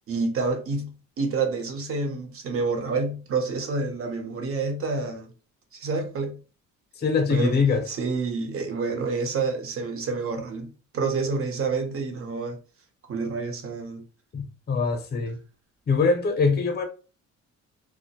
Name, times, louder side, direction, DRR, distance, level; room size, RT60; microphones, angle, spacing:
voice 1, 0.1-5.3 5.7-6.4 7.3-7.6 7.9-12.6 13.1-14.0, right 4 dB, 50° right, 0.7 m, -28 dB
voice 2, 7.0-7.8 14.3-15.4 15.9-16.8, left 4 dB, 35° left, 0.6 m, -23 dB
2.1 x 2.1 x 2.8 m
cardioid pair, 90°, 30 cm